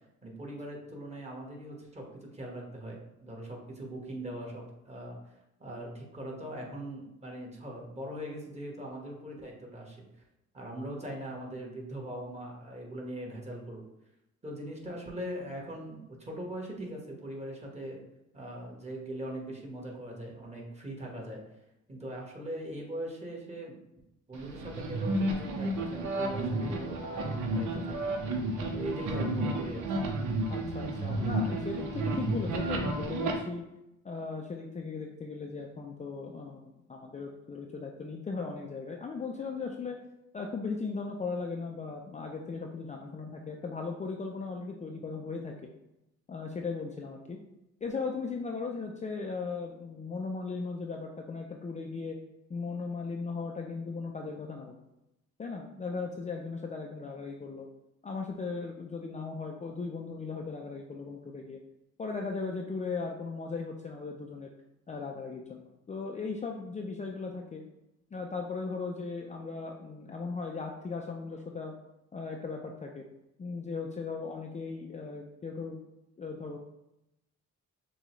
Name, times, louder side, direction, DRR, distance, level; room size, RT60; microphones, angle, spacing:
voice 1, 0.2-5.2 5.6-10.0 10.5-13.8 14.4-18.0 18.3-21.4 21.9-23.8 24.3-28.1 28.7-30.0, right 1 dB, 20° right, -2 dB, 1.4 m, -40 dB
sound 1, 24.3-33.3, right 2 dB, 80° right, 0.9 m, -32 dB
voice 2, 30.5-33.7 34.0-40.0 40.3-45.5 46.3-47.4 47.8-52.2 52.5-54.8 55.4-57.7 58.0-61.6 62.0-64.5 64.9-67.6 68.1-71.7 72.1-73.1 73.4-75.8 76.2-76.6, left 4 dB, 25° left, 1 dB, 0.4 m, -37 dB
6.6 x 2.3 x 3.1 m, 0.89 s
cardioid pair, 90°, 30 cm